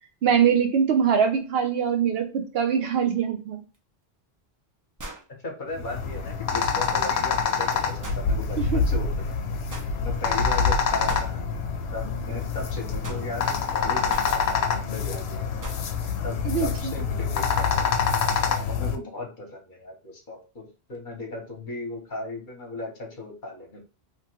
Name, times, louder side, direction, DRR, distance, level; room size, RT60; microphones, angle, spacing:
voice 1, 0.2-3.6 8.6-8.8 16.4-16.9, right 7 dB, 70° right, 5 dB, 0.8 m, -23 dB
sound 1, 3.7-3.8 5.0-5.3 8.0-8.3 9.7-9.9 11.1-11.3 13.0-13.3 14.1-14.4 15.6-15.9, right 1 dB, 30° right, 0.4 m, -38 dB
voice 2, 5.3-9.4 10.0-11.5 11.9-15.8 16.2-17.7 17.9-18.1 18.7-23.8, left 2 dB, 50° left, 1 dB, 1.0 m, -37 dB
sound 2, 5.7-19.0, left 5 dB, 80° left, 0.8 m, -26 dB
3.0 x 2.2 x 2.8 m, 0.35 s
omnidirectional pair, 1.1 m